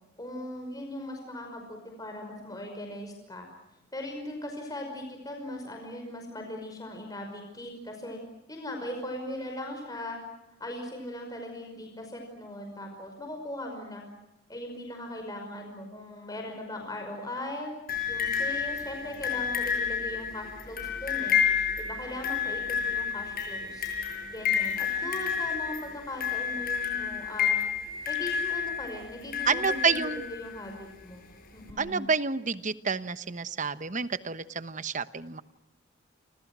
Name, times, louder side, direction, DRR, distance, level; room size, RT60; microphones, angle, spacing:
voice 1, 0.2-3.5 3.9-8.2 8.5-10.2 10.6-14.0 14.5-17.7 18.1-27.6 28.1-31.3 31.5-32.1, left 1 dB, 20° left, 3 dB, 5.6 m, -39 dB
sound 1, 17.9-30.7 31.7-31.8, left 7 dB, 45° left, 7.1 m, -30 dB
voice 2, 29.5-30.2 31.8-35.4, right 5 dB, 40° right, 12 dB, 1.1 m, -29 dB
30.0 x 26.5 x 6.2 m, 0.94 s
head